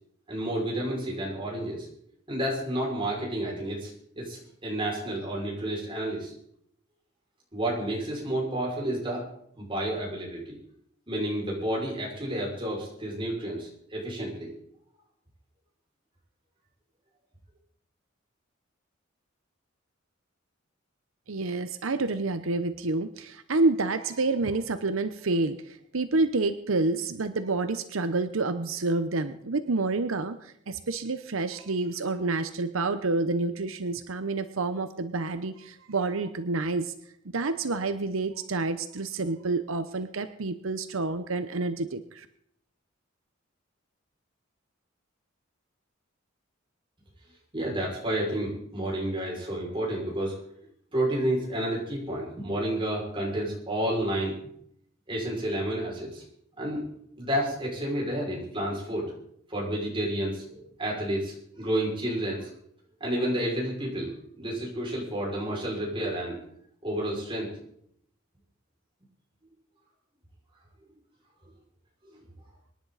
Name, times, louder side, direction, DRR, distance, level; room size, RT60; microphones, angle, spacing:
voice 1, 0.3-1.9 2.3-6.3 7.5-9.2 9.6-10.6 11.1-14.5 47.5-50.4 50.9-54.3 55.1-56.2 56.6-56.8 57.2-59.1 59.5-62.5 63.0-64.1 64.4-66.4 66.8-67.6, right 1 dB, 25° right, -3 dB, 5.9 m, -30 dB
voice 2, 21.3-36.9 37.3-42.3, right 3 dB, 90° right, 11 dB, 0.8 m, -28 dB
24.5 x 10.5 x 4.1 m, 0.69 s
head